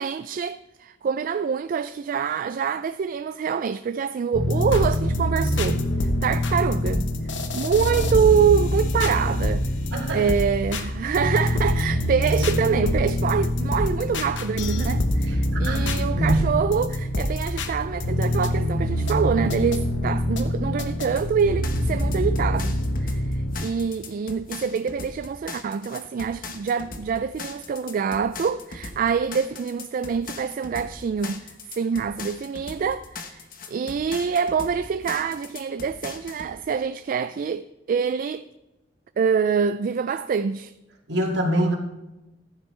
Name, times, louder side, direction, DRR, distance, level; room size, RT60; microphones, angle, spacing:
voice 1, 0.0-7.1 7.5-9.6 10.1-38.4 39.2-40.7, right 6 dB, 50° right, 0.3 m, -25 dB
sound 1, 4.3-23.7, left 1 dB, 75° left, 1.1 m, -25 dB
voice 2, 15.5-16.4 41.1-41.8, right 1 dB, 65° right, 2.3 m, -24 dB
sound 2, 21.2-36.5, left 4 dB, 50° left, 1.3 m, -39 dB
14.5 x 11.0 x 3.3 m
head